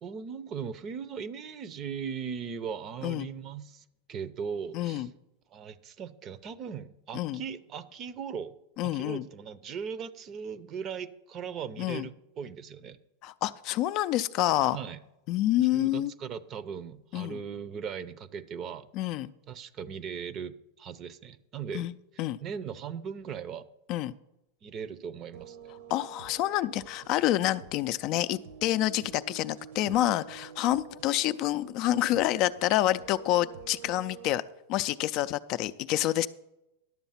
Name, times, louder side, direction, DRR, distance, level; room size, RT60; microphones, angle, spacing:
voice 1, 0.0-5.1 5.5-8.5 8.8-13.0 14.7-15.0 15.6-18.9 19.5-21.9 22.1-23.6 24.6-25.6, right 7 dB, 35° right, 16 dB, 0.6 m, -38 dB
voice 2, 4.7-5.1 7.1-7.4 8.8-9.2 11.8-12.1 13.2-14.8 15.3-16.1 17.1-17.4 19.0-19.3 21.7-21.9 22.2-22.4 23.9-24.1 25.9-34.4 34.7-36.3, left 14 dB, 45° left, 13 dB, 0.4 m, -28 dB
sound 1, 25.3-34.4, right 7 dB, 65° right, 1.0 m, -49 dB
11.0 x 7.0 x 5.7 m, 0.91 s
hypercardioid pair, 125°, 0 cm